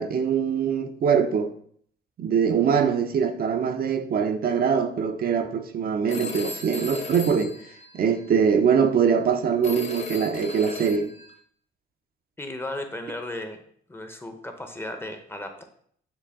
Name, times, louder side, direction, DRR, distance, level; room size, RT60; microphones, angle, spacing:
voice 1, 0.0-1.5 2.2-7.6 7.9-11.1, right 7 dB, 50° right, 0.5 m, -23 dB
Telephone, 6.1-8.4 9.6-11.4, left 3 dB, 35° left, 0.9 m, -37 dB
voice 2, 12.4-13.6 13.9-15.6, left 1 dB, 10° left, 0.6 m, -35 dB
6.6 x 2.2 x 3.5 m
cardioid pair, 90°, 20 cm